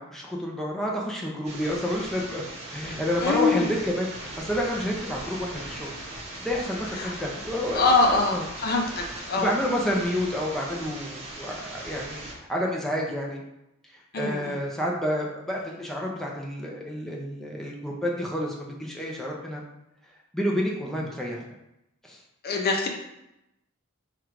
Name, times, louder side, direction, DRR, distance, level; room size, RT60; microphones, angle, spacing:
voice 1, 0.0-2.4 2.7-5.9 6.4-8.4 9.4-13.4 14.2-19.6 20.3-21.4 22.0-22.2, equal, ahead, -3 dB, 0.6 m, -29 dB
sound 1, 1.4-12.3, right 1 dB, 30° right, 0.9 m, -39 dB
voice 2, 3.2-3.7 7.0-7.1 7.7-9.5 14.1-14.6 22.4-22.9, left 3 dB, 50° left, 1 dB, 0.7 m, -24 dB
4.6 x 2.5 x 4.6 m, 0.86 s
head